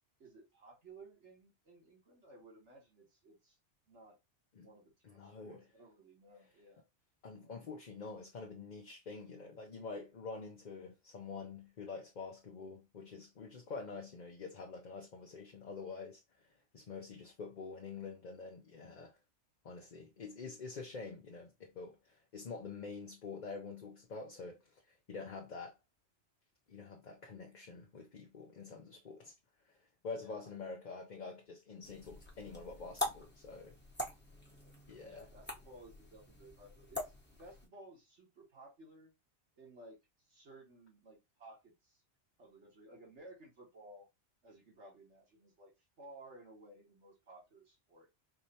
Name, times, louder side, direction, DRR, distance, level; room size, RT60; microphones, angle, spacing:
voice 1, 0.2-3.6 3.9-4.2 4.6-6.8 30.2-30.5 35.0-39.1 39.6-40.0 40.3-42.0 42.4-44.1 44.4-45.7 46.0-48.1, right 2 dB, 75° right, 2.3 m, -57 dB
voice 2, 5.0-5.6 7.2-16.5 16.7-19.2 19.6-25.8 26.7-29.3 29.7-29.8 30.0-33.8 34.9-35.3, left 4 dB, 45° left, 0.8 m, -47 dB
sound 1, 31.8-37.7, left 1 dB, 10° left, 0.9 m, -44 dB
4.7 x 3.3 x 2.8 m
omnidirectional pair, 1.2 m